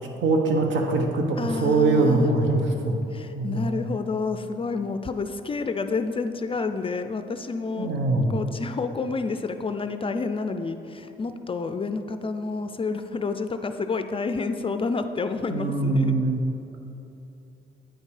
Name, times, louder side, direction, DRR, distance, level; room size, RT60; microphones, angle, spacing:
voice 1, 0.2-2.9 3.4-3.8 7.8-8.3 15.5-16.4, right 3 dB, 70° right, 2 dB, 1.1 m, -23 dB
voice 2, 1.4-2.3 3.1-7.9 8.3-16.1, left 4 dB, 25° left, 9 dB, 0.4 m, -29 dB
9.0 x 5.3 x 5.0 m, 2.9 s
cardioid pair, 90°, 20 cm